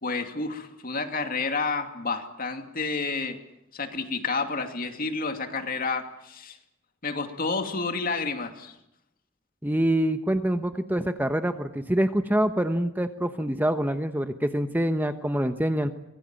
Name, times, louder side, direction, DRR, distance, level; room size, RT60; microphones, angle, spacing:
voice 1, 0.0-3.4 3.7-6.6 7.0-8.7, left 4 dB, 45° left, 6 dB, 2.6 m, -30 dB
voice 2, 9.6-15.9, right 1 dB, 10° right, 8 dB, 1.0 m, -25 dB
24.5 x 22.0 x 9.0 m, 0.85 s
head